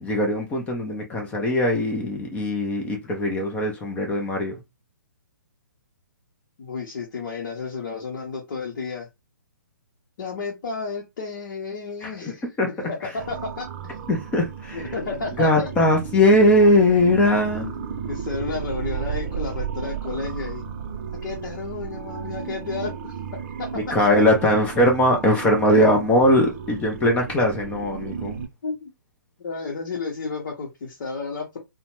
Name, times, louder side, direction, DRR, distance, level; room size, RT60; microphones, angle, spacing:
voice 1, 0.0-4.6 12.0-12.3 12.6-12.7 13.0-13.1 14.1-14.8 15.4-17.7 23.9-28.4, left 1 dB, 10° left, 0.6 m, -20 dB
voice 2, 6.6-9.1 10.2-12.4 12.9-14.0 14.7-15.7 18.1-20.6 21.2-23.2 23.6-23.7 25.8-25.9 28.6-28.9 29.4-31.6, left 4 dB, 55° left, 0.9 m, -32 dB
sound 1, 13.2-28.5, right 7 dB, 40° right, 0.5 m, -34 dB
2.7 x 2.2 x 3.0 m
hypercardioid pair, 145°, 11 cm